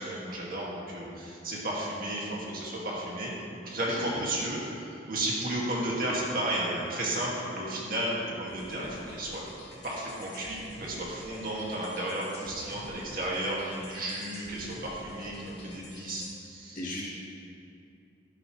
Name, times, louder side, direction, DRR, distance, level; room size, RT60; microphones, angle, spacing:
voice 1, 0.0-9.4 9.8-16.8, right 1 dB, 50° right, -4 dB, 2.1 m, -33 dB
voice 2, 3.9-4.5 16.7-17.0, left 1 dB, 45° left, -6 dB, 2.5 m, -37 dB
sound 1, 8.5-16.3, left 1 dB, 65° left, 2.6 m, -49 dB
12.0 x 11.0 x 3.2 m, 2.5 s
head